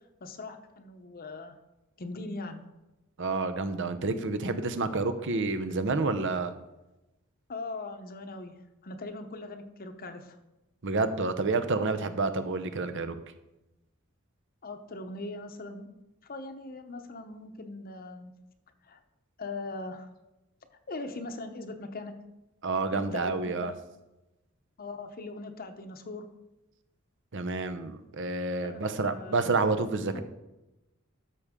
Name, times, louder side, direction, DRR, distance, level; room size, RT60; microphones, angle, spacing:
voice 1, 0.2-1.6 2.0-2.7 7.5-10.4 14.6-15.9 16.2-18.3 18.8-19.0 19.4-20.1 20.9-22.1 22.9-23.8 24.8-26.3 28.6-29.5 30.1-30.2, left 2 dB, 45° left, 7 dB, 0.8 m, -40 dB
voice 2, 3.2-6.5 10.8-13.2 22.6-23.7 27.3-30.2, right 3 dB, 60° right, 10 dB, 0.8 m, -29 dB
13.0 x 6.8 x 3.7 m, 0.99 s
head